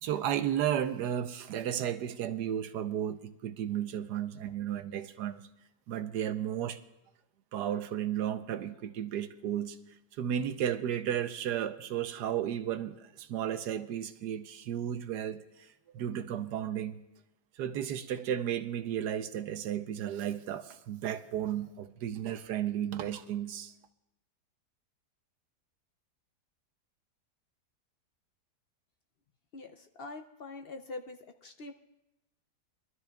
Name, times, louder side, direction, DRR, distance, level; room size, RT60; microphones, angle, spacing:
voice 1, 0.0-5.5 5.9-6.8 7.5-9.8 10.2-15.4 15.9-17.0 17.6-23.7, right 10 dB, 85° right, 10 dB, 1.3 m, -33 dB
voice 2, 29.5-31.7, left 3 dB, 65° left, 6 dB, 0.6 m, -44 dB
23.0 x 13.0 x 2.3 m, 0.93 s
omnidirectional pair, 1.7 m